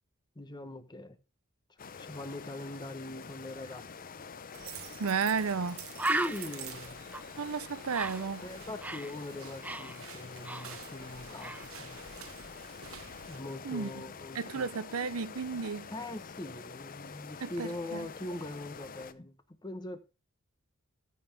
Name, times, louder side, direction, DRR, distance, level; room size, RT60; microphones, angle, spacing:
voice 1, 0.3-1.2 1.8-3.8 6.1-7.0 8.4-12.0 13.3-14.7 15.9-19.4 19.6-20.0, left 1 dB, 20° left, 1.0 m, -42 dB
sound 1, 1.8-19.1, left 5 dB, 40° left, 0.6 m, -47 dB
sound 2, 4.5-13.4, right 9 dB, 70° right, 1.0 m, -49 dB
voice 2, 5.0-5.9 7.4-8.5 13.6-13.9 14.3-15.9 17.4-18.1, right 5 dB, 90° right, 0.7 m, -33 dB
Bird, 5.1-5.3 5.6-5.7 6.0-9.2 9.4-11.1 11.4-11.7, right 2 dB, 5° right, 0.4 m, -37 dB
13.5 x 5.5 x 3.4 m
head